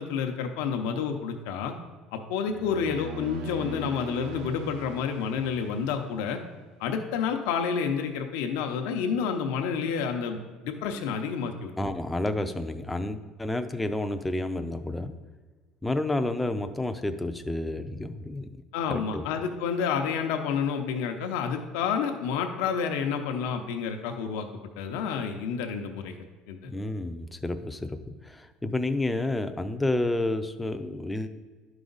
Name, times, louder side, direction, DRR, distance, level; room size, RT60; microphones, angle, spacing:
voice 1, 0.0-1.7 2.1-6.4 6.8-11.7 18.7-24.5 24.8-26.1 26.5-26.7, left 6 dB, 80° left, 5 dB, 0.7 m, -29 dB
sound 1, 2.3-6.7, right 1 dB, 65° right, 0.6 m, -42 dB
voice 2, 11.8-15.1 15.8-18.6 18.9-19.3 26.6-31.3, left 2 dB, 5° left, 7 dB, 0.4 m, -30 dB
11.5 x 4.9 x 3.9 m, 1.4 s
cardioid pair, 160°, 0 cm